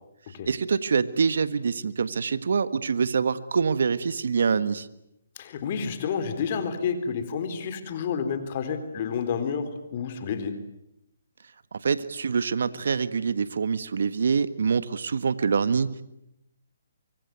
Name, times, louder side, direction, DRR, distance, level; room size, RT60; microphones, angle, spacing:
voice 1, 0.4-4.9 11.7-16.0, right 5 dB, 70° right, 14 dB, 1.5 m, -25 dB
voice 2, 5.4-10.6, left 6 dB, 40° left, 9 dB, 4.0 m, -30 dB
25.0 x 24.0 x 9.4 m, 0.83 s
hypercardioid pair, 150°, 0 cm